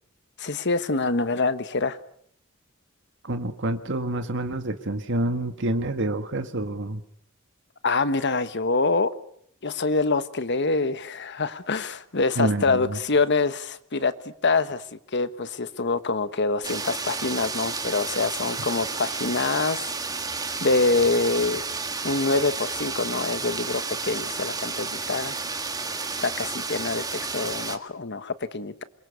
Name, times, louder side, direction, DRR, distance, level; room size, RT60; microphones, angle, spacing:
voice 1, 0.4-2.0 7.8-9.1 9.6-14.1 14.4-19.9 20.6-21.6 22.0-25.4 26.2-28.8, left 3 dB, 55° left, 12 dB, 1.3 m, -25 dB
voice 2, 3.2-7.0 12.4-13.0, right 1 dB, 60° right, 8 dB, 1.7 m, -27 dB
sound 1, 16.6-27.8, right 4 dB, 20° right, 1.8 m, -31 dB
27.0 x 22.5 x 6.9 m, 0.65 s
head